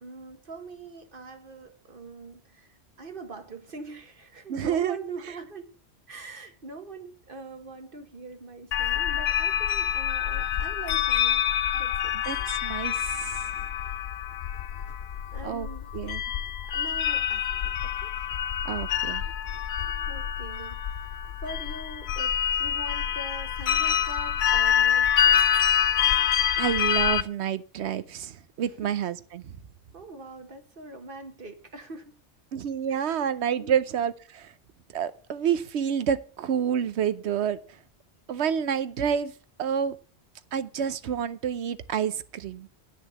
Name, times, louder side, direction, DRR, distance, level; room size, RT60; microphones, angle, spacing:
voice 1, 0.0-5.7 6.1-11.5 11.7-12.1 15.3-15.9 16.7-17.5 17.8-18.1 19.6-20.8 21.4-25.6 28.8-28.9 29.9-32.2 32.9-33.8, right 2 dB, 55° right, 7 dB, 1.4 m, -43 dB
voice 2, 4.5-5.0 12.3-13.5 15.4-15.7 15.9-16.2 18.6-19.2 26.6-29.5 32.5-34.5 34.9-37.6 38.3-39.3 39.6-40.0 40.5-42.7, right 8 dB, 75° right, 14 dB, 1.0 m, -28 dB
sound 1, 8.7-27.2, left 9 dB, 70° left, 0.9 m, -26 dB
10.0 x 6.4 x 6.9 m, 0.41 s
omnidirectional pair, 1.1 m